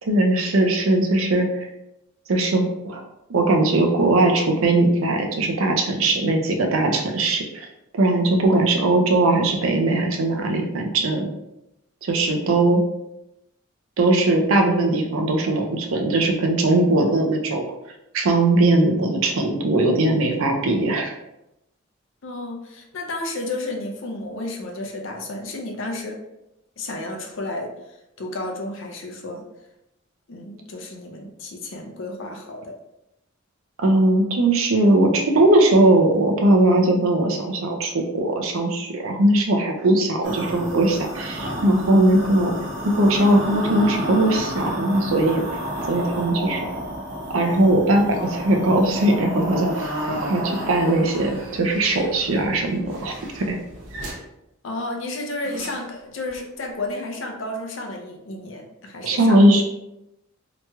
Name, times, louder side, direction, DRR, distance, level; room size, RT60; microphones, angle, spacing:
voice 1, 0.0-1.6 2.3-3.0 3.3-7.7 7.9-11.3 12.0-12.8 14.0-17.7 18.1-21.1 33.8-42.5 42.8-45.4 45.9-46.6 47.3-53.6 59.0-59.6, right 2 dB, 80° right, 3 dB, 0.5 m, -19 dB
voice 2, 22.2-26.2 26.8-29.4 30.3-32.7 54.6-59.6, left 2 dB, 65° left, 2 dB, 0.5 m, -32 dB
sound 1, 40.2-54.1 55.4-55.9 56.3-56.4, right 1 dB, 60° right, 0.8 m, -31 dB
2.9 x 2.8 x 2.3 m, 0.88 s
head